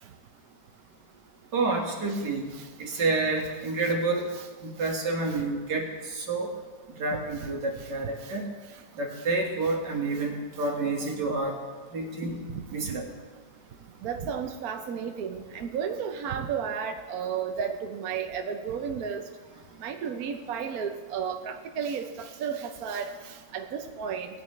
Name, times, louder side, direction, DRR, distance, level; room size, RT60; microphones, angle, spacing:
voice 1, 1.5-2.5 2.8-4.3 4.6-6.5 7.0-8.4 9.0-11.6 11.9-12.4 12.7-13.1, right 3 dB, 80° right, 0 dB, 2.3 m, -29 dB
voice 2, 14.0-19.2 19.8-23.1 23.5-24.3, right 7 dB, 65° right, 5 dB, 1.1 m, -32 dB
17.5 x 9.7 x 3.2 m, 1.3 s
omnidirectional pair, 1.8 m